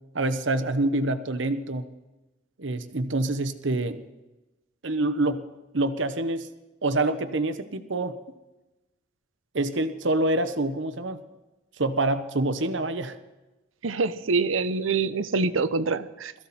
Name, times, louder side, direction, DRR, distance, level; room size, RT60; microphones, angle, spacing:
voice 1, 0.1-1.9 2.6-4.0 4.8-5.4 5.7-6.5 6.8-8.2 9.5-11.2 11.8-13.2, right 2 dB, 70° right, 1.1 m, -26 dB
voice 2, 13.8-16.3, right 4 dB, 90° right, 0.8 m, -25 dB
22.0 x 14.5 x 4.3 m
head